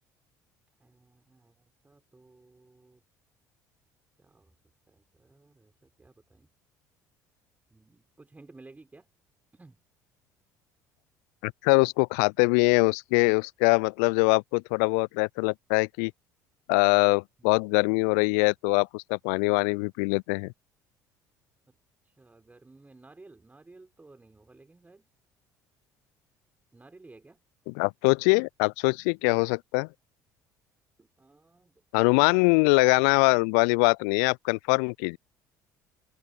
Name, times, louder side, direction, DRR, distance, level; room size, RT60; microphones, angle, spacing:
voice 1, 0.8-3.0 4.2-4.5 4.9-6.5 7.7-9.1 9.5-9.8 17.4-17.5 21.7-21.8 22.0-25.1 26.7-27.4 31.0-31.8 32.1-32.7, right 3 dB, 15° right, 6.4 m, -55 dB
voice 2, 11.4-16.1 16.7-20.5 27.7-29.9 31.9-35.2, left 35 dB, 65° left, 0.4 m, -23 dB
figure-of-eight pair, 55°, 9 cm